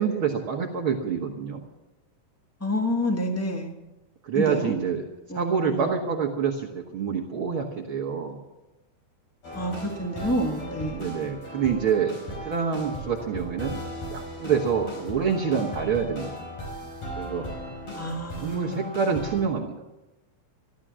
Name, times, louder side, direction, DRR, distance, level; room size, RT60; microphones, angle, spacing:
voice 1, 0.0-1.6 4.2-5.0 5.3-8.4 10.9-13.8 14.1-16.3 17.2-17.5 18.4-19.7, right 6 dB, 55° right, -1 dB, 1.6 m, -27 dB
voice 2, 2.6-3.7 4.3-4.7 5.3-5.9 9.5-11.0 17.9-19.0, equal, 10° left, 1 dB, 0.6 m, -28 dB
sound 1, 9.4-19.4, equal, 50° left, 6.1 m, -37 dB
14.0 x 12.5 x 7.5 m, 1.1 s
omnidirectional pair, 3.8 m